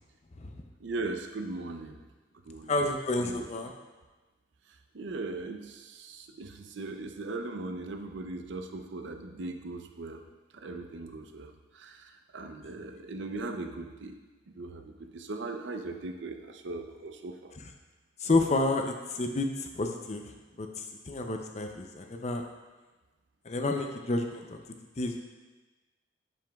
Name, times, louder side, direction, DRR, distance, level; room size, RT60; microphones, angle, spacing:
voice 1, 0.8-2.0 2.5-2.8 3.2-3.4 4.9-10.2 10.5-14.2 14.5-17.5, right 2 dB, 70° right, 6 dB, 0.5 m, -39 dB
voice 2, 2.7-3.7 18.2-20.2 20.6-22.4 23.5-24.6 25.0-25.2, left 2 dB, 35° left, 4 dB, 0.5 m, -30 dB
7.4 x 7.1 x 2.3 m, 1.2 s
head